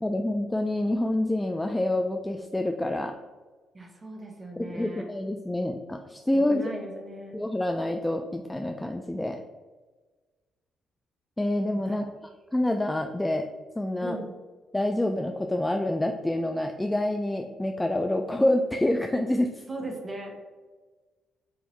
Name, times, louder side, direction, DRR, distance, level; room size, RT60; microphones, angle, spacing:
voice 1, 0.0-3.1 4.6-6.8 7.3-9.4 11.4-12.0 12.5-13.5 13.8-14.2 14.7-19.6, left 1 dB, 10° left, 4 dB, 0.3 m, -27 dB
voice 2, 3.7-5.0 6.3-7.4 11.7-12.0 14.0-14.3 19.7-20.4, right 1 dB, 25° right, 1 dB, 1.1 m, -38 dB
5.7 x 2.6 x 3.2 m, 1.3 s
cardioid pair, 90°, 0 cm